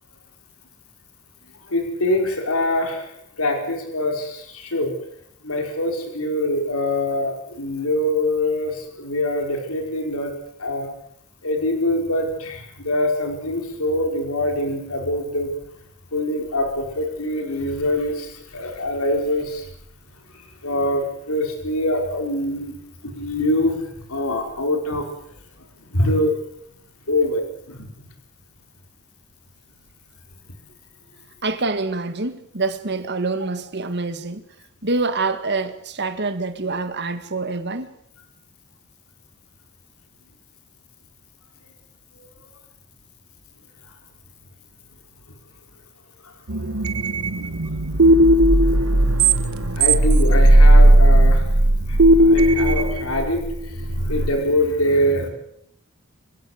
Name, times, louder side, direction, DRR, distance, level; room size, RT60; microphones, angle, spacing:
voice 1, 1.7-4.9 5.4-10.3 10.6-10.9 11.4-15.5 16.1-19.7 20.3-25.0 25.9-26.3 27.1-28.1 42.2-42.5 46.2-46.3 49.7-51.5 51.9-55.3, left 1 dB, 85° left, 5.0 m, -24 dB
voice 2, 31.4-34.4 34.8-37.9, right 3 dB, 50° right, 1.9 m, -26 dB
sound 1, 46.5-54.3, right 1 dB, 85° right, 1.4 m, -15 dB
26.5 x 16.0 x 8.2 m
head